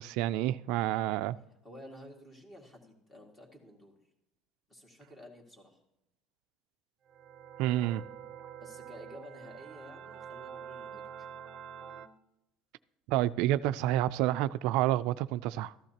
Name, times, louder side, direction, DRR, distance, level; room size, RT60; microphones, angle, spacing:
voice 1, 0.0-1.4 7.6-8.0 13.1-15.7, right 14 dB, 75° right, 0.3 m, -29 dB
voice 2, 1.6-3.9 4.7-5.8 8.6-11.3, left 1 dB, 15° left, 2.1 m, -52 dB
sound 1, 7.1-12.1, right 8 dB, 40° right, 0.6 m, -46 dB
14.0 x 12.0 x 2.9 m
cardioid pair, 145°, 0 cm